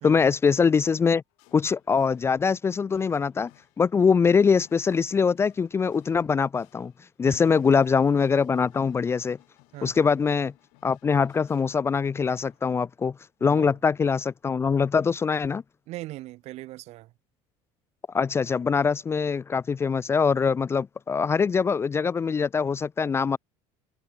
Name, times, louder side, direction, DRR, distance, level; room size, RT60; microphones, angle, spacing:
voice 1, 0.0-1.2 1.5-3.5 3.8-6.9 7.2-9.4 9.8-10.5 10.8-13.1 13.4-15.6 18.1-23.4, left 5 dB, 20° left, 0.6 m, -23 dB
sound 1, 1.3-12.0 12.3-13.0, left 34 dB, 85° left, 7.6 m, -61 dB
voice 2, 9.7-10.1 13.4-13.8 15.9-17.1, right 17 dB, 60° right, 1.6 m, -40 dB
cardioid pair, 145°, 13 cm